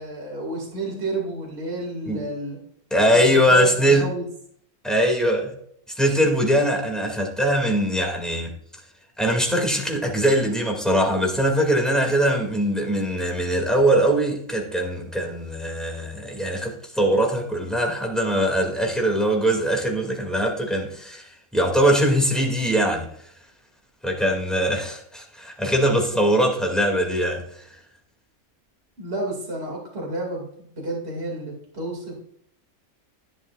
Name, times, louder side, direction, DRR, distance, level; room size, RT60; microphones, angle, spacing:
voice 1, 0.0-2.6 3.1-3.2 3.5-4.2 29.0-32.1, right 1 dB, 45° right, 2.7 m, -31 dB
voice 2, 2.9-4.0 4.8-5.5 6.0-8.5 9.2-23.1 24.0-27.6, equal, ahead, 2.2 m, -21 dB
11.5 x 10.5 x 2.4 m
omnidirectional pair, 1.5 m